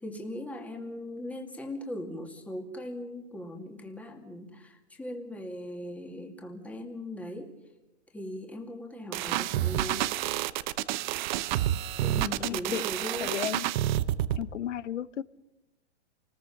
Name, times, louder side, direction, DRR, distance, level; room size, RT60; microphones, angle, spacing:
voice 1, 0.0-7.6 8.1-10.1 12.0-13.4, left 1 dB, 5° left, 3 dB, 2.4 m, -39 dB
sound 1, 9.1-14.4, right 13 dB, 40° right, 0.8 m, -29 dB
voice 2, 12.2-12.8 13.2-13.7 14.4-15.2, left 10 dB, 85° left, 18 dB, 1.0 m, -34 dB
28.0 x 20.0 x 5.9 m, 0.95 s
hypercardioid pair, 140°, 35 cm